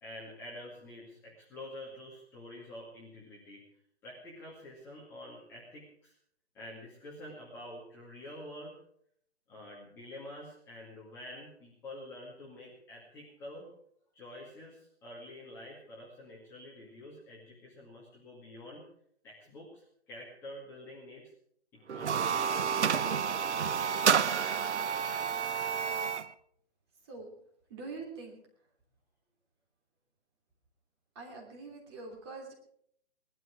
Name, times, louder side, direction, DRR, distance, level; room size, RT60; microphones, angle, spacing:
voice 1, 0.0-3.6 4.0-6.1 6.5-8.8 9.5-13.7 14.1-18.9 19.2-21.3 21.7-22.8, left 1 dB, 5° left, -6 dB, 2.2 m, -48 dB
sound 1, 21.9-26.3, right 7 dB, 85° right, 1.0 m, -29 dB
voice 2, 27.7-28.4 31.1-32.5, right 3 dB, 25° right, -1 dB, 3.1 m, -44 dB
19.5 x 12.5 x 4.8 m, 0.67 s
hypercardioid pair, 170°, 34 cm